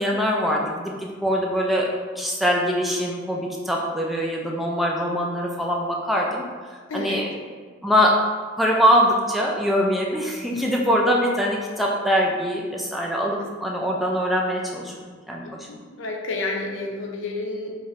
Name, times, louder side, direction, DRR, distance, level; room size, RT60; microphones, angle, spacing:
voice 1, 0.0-1.9 2.2-6.4 6.9-7.3 7.8-8.1 8.6-14.9 15.3-15.7, equal, ahead, -2 dB, 0.3 m, -23 dB
voice 2, 6.9-7.2 15.7-17.7, left 2 dB, 75° left, 1 dB, 0.5 m, -30 dB
2.9 x 2.5 x 4.1 m, 1.6 s
head